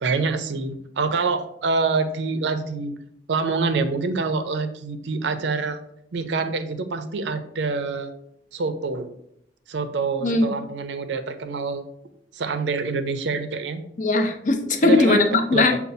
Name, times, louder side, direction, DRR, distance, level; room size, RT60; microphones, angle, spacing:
voice 1, 0.0-2.9 3.3-5.8 6.1-8.1 8.5-9.1 9.7-11.8 12.3-13.8 14.8-15.2 15.5-15.8, right 4 dB, 80° right, 9 dB, 0.5 m, -26 dB
voice 2, 10.2-10.5 14.0-15.8, left 2 dB, 45° left, 6 dB, 0.5 m, -19 dB
6.7 x 2.3 x 2.6 m, 0.73 s
head